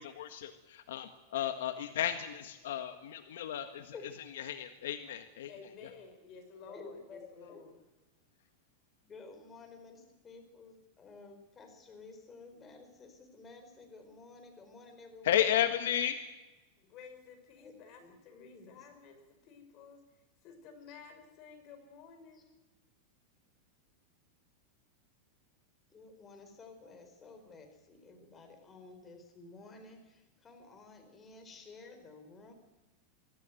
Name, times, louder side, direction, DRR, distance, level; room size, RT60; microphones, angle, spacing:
voice 1, 0.0-3.9 4.4-5.5 15.2-16.2, left 11 dB, 85° left, 8 dB, 1.6 m, -33 dB
voice 2, 5.5-7.8 16.9-22.5, left 6 dB, 40° left, 6 dB, 6.1 m, -53 dB
voice 3, 6.6-7.6 9.0-15.7 17.6-17.7 18.0-18.9 22.3-22.4 25.9-32.5, left 3 dB, 20° left, 6 dB, 4.3 m, -53 dB
24.0 x 14.5 x 9.3 m, 1.1 s
supercardioid pair, 145°, 0 cm